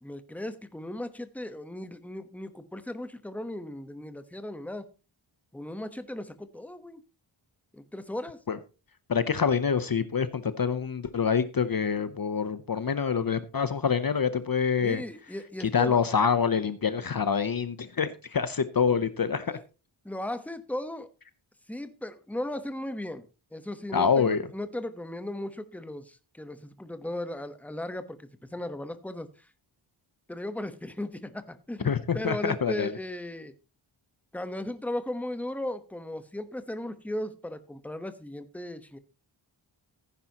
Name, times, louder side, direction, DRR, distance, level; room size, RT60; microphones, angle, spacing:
voice 1, 0.0-4.9 5.5-7.0 7.7-8.4 14.8-16.0 19.5-19.6 20.0-21.1 21.7-23.3 23.5-29.5 30.3-33.5 34.3-39.0, left 1 dB, 5° left, 1.0 m, -36 dB
voice 2, 9.1-15.0 15.6-19.6 23.9-24.4 31.8-32.9, left 6 dB, 45° left, 0.7 m, -26 dB
15.5 x 9.9 x 2.9 m
wide cardioid pair, 105°, 48 cm